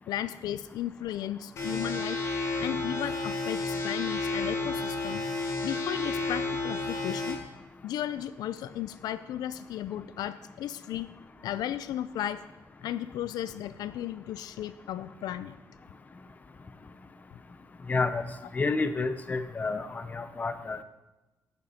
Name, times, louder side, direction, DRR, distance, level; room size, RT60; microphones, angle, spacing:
voice 1, 0.1-2.2 2.6-5.2 5.6-7.5 7.8-11.1 11.4-12.4 12.8-15.6, left 11 dB, 80° left, 14 dB, 0.4 m, -35 dB
sound 1, 1.6-7.3, left 3 dB, 45° left, 2.2 m, -31 dB
voice 2, 17.9-18.2 18.5-20.8, left 3 dB, 25° left, 11 dB, 0.6 m, -29 dB
8.5 x 6.7 x 5.5 m, 1.0 s
cardioid pair, 120°, 7 cm